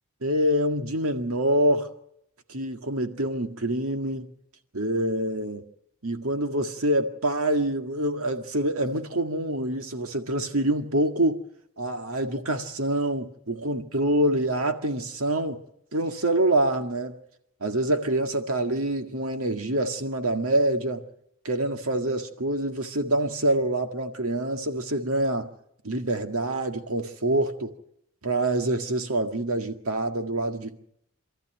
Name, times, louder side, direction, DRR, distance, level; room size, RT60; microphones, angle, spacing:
voice 1, 0.2-1.9 2.5-4.3 4.7-5.6 6.0-11.4 11.8-15.6 15.9-17.2 17.6-21.1 21.5-25.5 25.8-27.7 28.2-30.8, right 1 dB, 80° right, 1.9 m, -26 dB
27.0 x 13.5 x 9.1 m
head